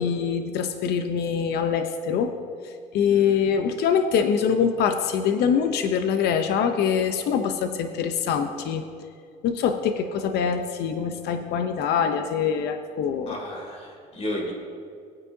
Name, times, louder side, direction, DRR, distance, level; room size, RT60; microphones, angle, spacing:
voice 1, 0.0-2.4 2.6-8.9 9.4-13.4, left 7 dB, 75° left, 7 dB, 0.7 m, -24 dB
voice 2, 3.1-3.4 13.3-14.5, left 1 dB, 40° left, 0 dB, 3.0 m, -33 dB
18.0 x 9.6 x 2.7 m, 2.2 s
cardioid pair, 110°, 17 cm